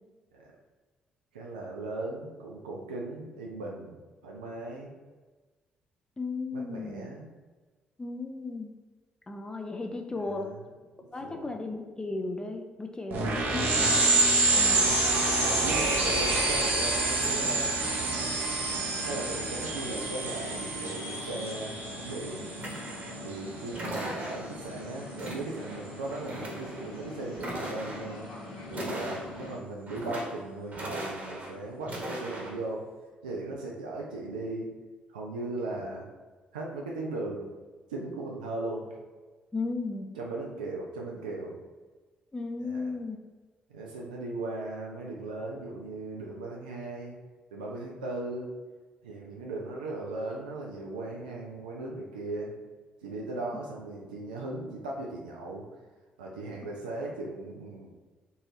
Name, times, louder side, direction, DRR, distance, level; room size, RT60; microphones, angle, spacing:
voice 1, 1.3-4.0 4.2-4.9 6.5-7.3 10.2-10.6 11.0-11.5 13.2-13.6 14.5-18.3 19.0-21.8 22.0-22.4 23.2-28.2 28.7-32.8 33.2-34.7 35.1-36.1 36.5-37.5 37.9-38.9 40.2-41.6 42.6-42.9 43.7-47.1 47.5-48.5 49.0-52.5 53.0-55.6 56.2-57.9, right 2 dB, 80° right, -2 dB, 0.4 m, -38 dB
voice 2, 6.2-7.1 8.0-8.7 9.3-10.5 11.1-13.7 14.5-15.0 39.5-40.1 42.3-43.2, left 3 dB, 20° left, 4 dB, 0.4 m, -35 dB
sound 1, 13.1-23.2, right 2 dB, 50° right, 0.7 m, -27 dB
sound 2, 17.1-29.6, left 1 dB, 80° left, 0.6 m, -43 dB
sound 3, 22.6-23.2 23.7-24.6 25.2-25.8 26.1-26.9 27.3-28.1 28.7-29.5 29.9-30.4 30.7-31.5 31.8-32.5, right 1 dB, 35° right, 1.1 m, -38 dB
3.9 x 2.5 x 2.7 m, 1.3 s
figure-of-eight pair, 45°, 4 cm